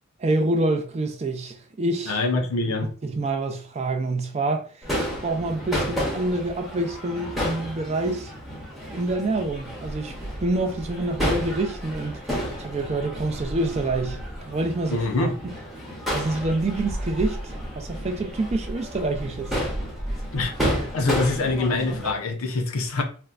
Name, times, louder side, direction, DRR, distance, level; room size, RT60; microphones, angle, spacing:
voice 1, 0.2-2.2 2.7-2.8 3.0-4.7 5.2-8.3 8.9-10.1 10.4-15.3 16.1-19.5, right 2 dB, 30° right, 0.3 m, -27 dB
voice 2, 2.1-2.9 14.9-15.4 20.3-20.5 20.9-23.0, left 2 dB, 80° left, 0.6 m, -24 dB
Crowd / Fireworks, 4.8-22.1, equal, ahead, 0.7 m, -31 dB
4.2 x 2.1 x 2.4 m
head